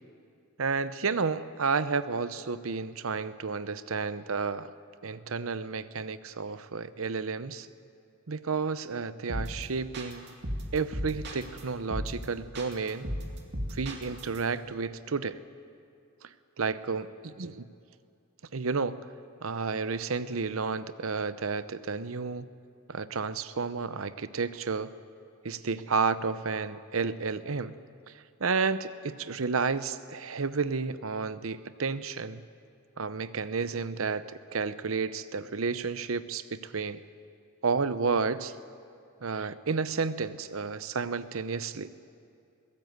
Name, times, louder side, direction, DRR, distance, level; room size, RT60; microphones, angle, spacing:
voice 1, 0.6-4.7 5.0-7.7 8.3-10.3 10.7-13.1 13.7-15.4 16.6-17.7 18.5-19.0 19.4-22.5 22.9-24.9 25.4-27.7 28.4-32.4 33.0-37.0 37.6-38.5 39.2-41.9, right 4 dB, 70° right, 14 dB, 0.8 m, -31 dB
sound 1, 9.3-9.6 9.9-11.6 11.9-12.2 12.5-14.4, equal, 55° right, 2.6 m, -35 dB
22.5 x 16.5 x 8.0 m, 2.5 s
head